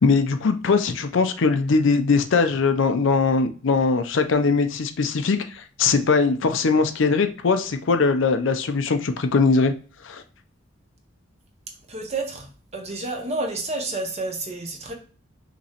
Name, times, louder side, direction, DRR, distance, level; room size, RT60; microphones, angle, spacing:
voice 1, 0.0-9.7 10.0-10.2, left 4 dB, 65° left, 8 dB, 0.5 m, -21 dB
voice 2, 11.9-14.9, right 2 dB, 35° right, 3 dB, 0.9 m, -30 dB
5.4 x 3.0 x 2.9 m, 0.38 s
head